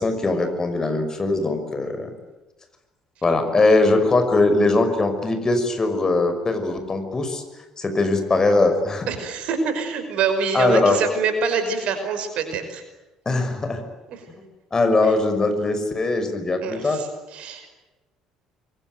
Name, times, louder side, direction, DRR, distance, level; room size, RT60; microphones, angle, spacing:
voice 1, 0.0-2.1 3.2-7.4 7.8-9.1 10.5-11.0 13.3-13.8 14.7-17.0, left 2 dB, 25° left, 7 dB, 6.1 m, -21 dB
voice 2, 9.1-12.8 14.1-14.2 16.6-17.7, right 5 dB, 55° right, 8 dB, 5.4 m, -25 dB
27.5 x 23.0 x 9.4 m, 1.1 s
figure-of-eight pair, 55°, 2 cm